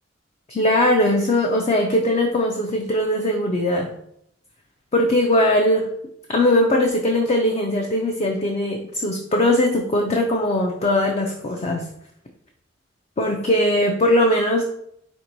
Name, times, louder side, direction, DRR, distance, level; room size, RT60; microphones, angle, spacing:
voice 1, 0.5-3.9 4.9-5.9 6.3-11.8 13.2-14.6, left 1 dB, 35° left, 2 dB, 0.4 m, -20 dB
4.4 x 4.3 x 2.6 m, 0.72 s
head